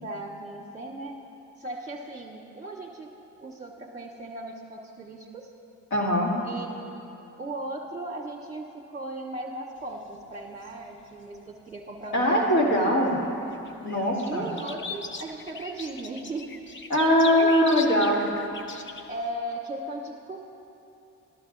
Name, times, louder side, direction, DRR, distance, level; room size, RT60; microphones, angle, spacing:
voice 1, 0.0-1.1 1.6-3.1 3.4-5.5 6.4-12.8 13.8-17.9 19.1-20.4, right 2 dB, 25° right, -3 dB, 1.0 m, -37 dB
voice 2, 5.9-6.3 12.1-13.2 13.8-14.5 16.9-18.3, equal, 80° left, -3 dB, 2.3 m, -21 dB
sound 1, 9.8-12.3 12.7-19.2, left 4 dB, 40° left, 0.8 m, -40 dB
13.5 x 11.5 x 3.9 m, 2.9 s
cardioid pair, 90°, 30 cm